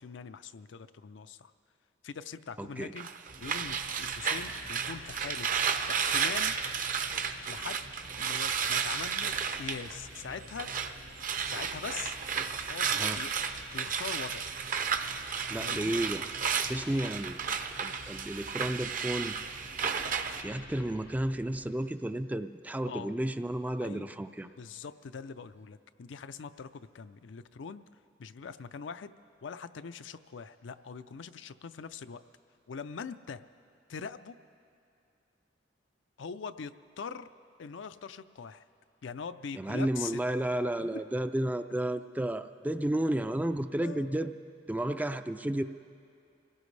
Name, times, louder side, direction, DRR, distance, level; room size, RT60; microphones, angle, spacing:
voice 1, 0.0-1.5 2.0-3.1 3.4-5.5 5.9-6.5 7.5-7.9 8.2-10.7 11.5-12.2 12.7-13.3 13.7-14.5 15.6-16.0 22.8-23.2 23.8-24.1 24.6-27.8 28.2-29.1 29.4-32.2 32.7-33.4 33.9-34.4 36.2-37.3 37.6-38.6 39.0-40.2 40.8-41.0 43.8-44.3, left 6 dB, 80° left, 11 dB, 0.5 m, -42 dB
voice 2, 2.6-2.9 13.0-13.2 15.5-16.3 16.6-17.4 17.8-19.4 20.4-24.5 39.6-44.3 44.7-45.6, right 1 dB, 10° right, 9 dB, 0.3 m, -32 dB
sound 1, 3.0-10.9 11.2-20.4, right 6 dB, 45° right, 0.6 m, -33 dB
sound 2, 3.3-21.7, equal, 65° right, 1.1 m, -51 dB
25.5 x 17.0 x 3.2 m, 2.5 s
head